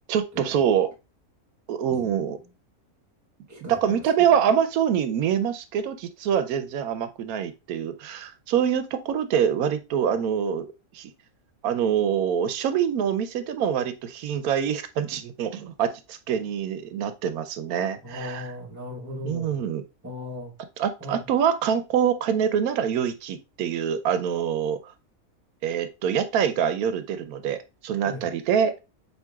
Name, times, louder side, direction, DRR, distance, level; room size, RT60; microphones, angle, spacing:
voice 1, 0.1-0.9 1.7-2.4 3.6-10.7 10.9-11.1 11.6-18.5 19.2-19.8 20.8-24.9 25.6-28.7, right 8 dB, 85° right, 1.1 m, -25 dB
voice 2, 3.5-4.0 18.0-19.6 20.0-20.5 21.0-21.3 28.1-28.3, left 1 dB, 15° right, 0.9 m, -37 dB
7.5 x 2.9 x 2.3 m
omnidirectional pair, 1.5 m